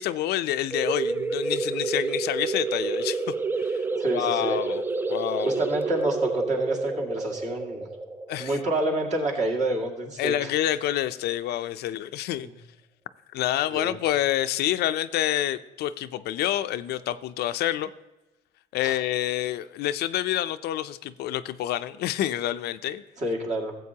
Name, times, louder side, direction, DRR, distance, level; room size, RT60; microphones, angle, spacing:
voice 1, 0.0-3.3 3.6-3.8 4.1-4.8 5.1-5.6 8.3-8.6 10.2-12.5 13.3-17.9 18.7-23.0, left 13 dB, 70° left, 12 dB, 0.5 m, -28 dB
sound 1, 0.7-10.0, right 3 dB, 10° right, 0.4 m, -29 dB
voice 2, 3.9-4.6 5.4-7.9 8.4-10.5 12.4-12.5 13.7-14.0 18.8-19.0 23.2-23.7, right 1 dB, 45° right, 1 dB, 2.1 m, -28 dB
14.0 x 7.8 x 2.8 m, 1.1 s
cardioid pair, 110°, 17 cm